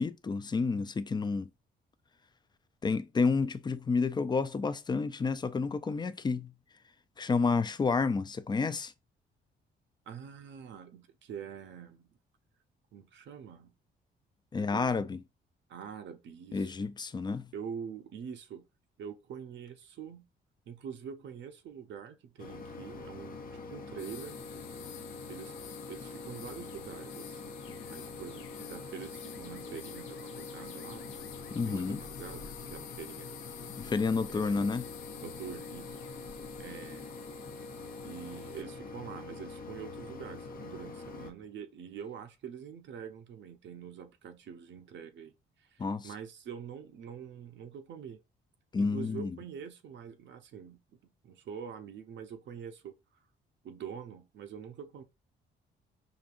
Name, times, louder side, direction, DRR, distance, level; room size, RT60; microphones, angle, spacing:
voice 1, 0.0-1.5 2.8-6.5 7.2-8.9 14.5-15.2 16.5-17.5 31.5-32.0 33.8-34.8 45.8-46.1 48.7-49.4, left 4 dB, 20° left, 0.4 m, -30 dB
voice 2, 10.1-12.1 12.9-13.7 14.5-14.9 15.7-16.9 17.5-18.6 19.0-20.2 20.7-23.4 23.7-24.4 25.3-25.5 25.9-27.6 27.9-31.2 31.6-33.4 33.7-33.9 34.3-34.6 35.2-36.0 36.6-37.2 38.0-45.3 45.6-48.2 48.8-50.8 51.2-52.9 53.6-55.0, right 7 dB, 65° right, 0.7 m, -45 dB
Mechanisms, 22.4-41.3, left 3 dB, 45° left, 0.8 m, -44 dB
sound 1, 24.0-38.6, left 11 dB, 75° left, 0.5 m, -50 dB
5.0 x 2.6 x 2.5 m
cardioid pair, 90°, 20 cm